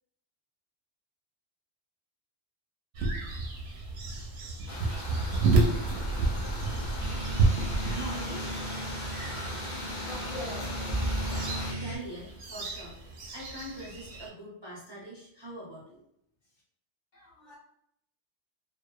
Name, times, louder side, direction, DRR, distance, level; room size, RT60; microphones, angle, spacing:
sound 1, 2.9-14.3, right 3 dB, 70° right, 0.8 m, -31 dB
sound 2, 4.7-11.7, equal, 50° left, 0.6 m, -36 dB
sound 3, 7.0-12.0, right 1 dB, 25° left, 1.0 m, -37 dB
voice 1, 7.9-8.5 9.1-9.9 11.3-13.0 13.3-16.0, right 1 dB, 40° right, -7 dB, 0.4 m, -43 dB
voice 2, 9.8-11.9 17.1-17.6, left 1 dB, 75° left, -5 dB, 1.2 m, -45 dB
2.8 x 2.2 x 2.2 m, 0.73 s
omnidirectional pair, 1.2 m